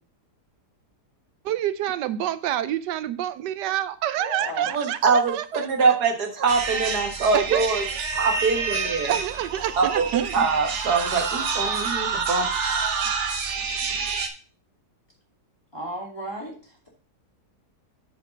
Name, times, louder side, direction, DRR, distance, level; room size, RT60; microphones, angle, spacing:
voice 1, 1.4-6.0 7.3-7.7 9.1-10.3, right 12 dB, 90° right, 13 dB, 1.2 m, -27 dB
voice 2, 4.2-4.7 15.7-16.9, equal, 15° left, -2 dB, 2.6 m, -35 dB
voice 3, 4.7-7.9 8.1-9.1 9.8-10.1 10.3-12.5, right 4 dB, 70° right, 3 dB, 1.9 m, -23 dB
sound 1, 6.5-14.3, right 5 dB, 50° right, 1.2 m, -28 dB
8.0 x 5.1 x 5.1 m, 0.37 s
omnidirectional pair, 1.8 m